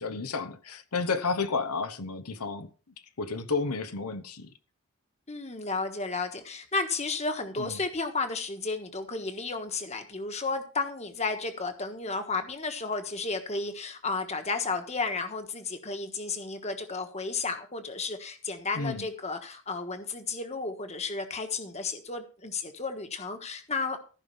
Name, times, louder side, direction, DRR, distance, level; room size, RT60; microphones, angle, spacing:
voice 1, 0.0-2.7 3.2-4.5 7.6-7.8 18.7-19.1, left 4 dB, 90° left, 1.0 m, -31 dB
voice 2, 5.3-24.0, left 3 dB, 30° left, 1.3 m, -33 dB
14.5 x 5.6 x 5.5 m
head